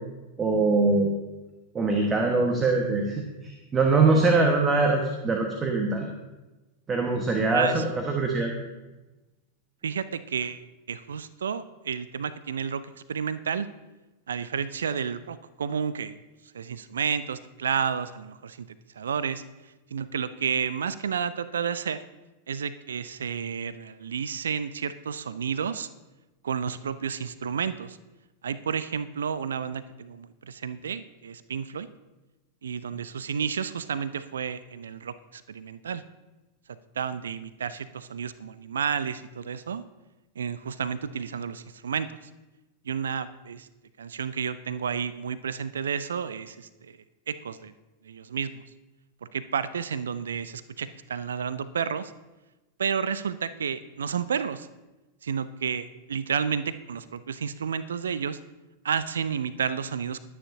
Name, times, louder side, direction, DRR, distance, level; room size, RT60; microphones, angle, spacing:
voice 1, 0.4-1.1 1.7-6.1 6.9-8.5, right 3 dB, 20° right, 2 dB, 1.4 m, -23 dB
voice 2, 7.5-7.8 9.8-12.8 13.1-13.7 14.3-16.1 16.5-19.4 19.9-22.0 22.5-25.9 26.4-28.0 28.4-31.9 32.6-36.0 37.0-39.8 40.4-42.2 42.8-43.7 44.0-47.0 47.3-47.7 48.0-48.6 49.2-52.1 52.8-54.7 55.2-58.4 58.8-60.3, right 7 dB, 65° right, 16 dB, 0.5 m, -31 dB
20.5 x 9.5 x 2.8 m, 1.1 s
figure-of-eight pair, 90°, 0 cm